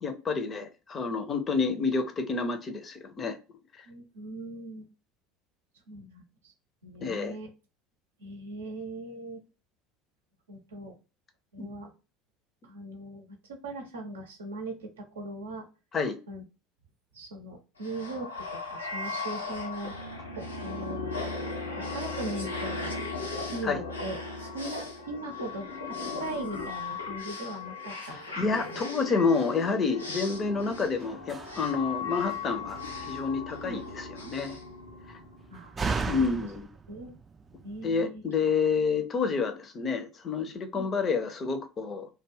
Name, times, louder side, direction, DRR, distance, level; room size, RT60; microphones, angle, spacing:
voice 1, 0.0-3.4 7.0-7.4 11.6-11.7 15.9-16.2 23.6-23.8 27.9-32.8 33.1-34.6 36.0-36.7 37.8-42.1, left 4 dB, 35° left, 7 dB, 0.5 m, -29 dB
voice 2, 3.9-4.9 5.9-6.5 6.8-7.5 8.2-9.4 10.5-10.9 11.5-11.9 12.6-15.7 16.3-16.4 17.1-20.0 20.3-21.1 21.8-23.0 23.4-28.8 33.6-33.8 35.5-36.3 36.9-37.1 37.6-38.2 40.7-40.9, right 2 dB, 75° right, 3 dB, 0.6 m, -40 dB
sound 1, 17.8-35.4, left 3 dB, 90° left, 0.5 m, -37 dB
Slam, 30.3-38.0, right 4 dB, 25° right, 0.3 m, -39 dB
2.3 x 2.1 x 3.2 m, 0.32 s
figure-of-eight pair, 70°, 0 cm